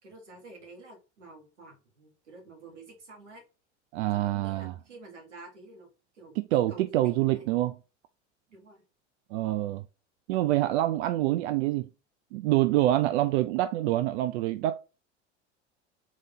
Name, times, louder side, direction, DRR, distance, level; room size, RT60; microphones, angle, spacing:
voice 1, 0.0-3.4 4.1-5.9 6.1-6.4 6.7-7.5 8.5-8.8, right 3 dB, 90° right, 1.7 m, -49 dB
voice 2, 3.9-4.7 6.4-7.7 9.3-9.8 10.3-11.9 12.3-14.8, right 15 dB, 65° right, 0.5 m, -26 dB
4.0 x 3.1 x 3.7 m
hypercardioid pair, 80°, 35 cm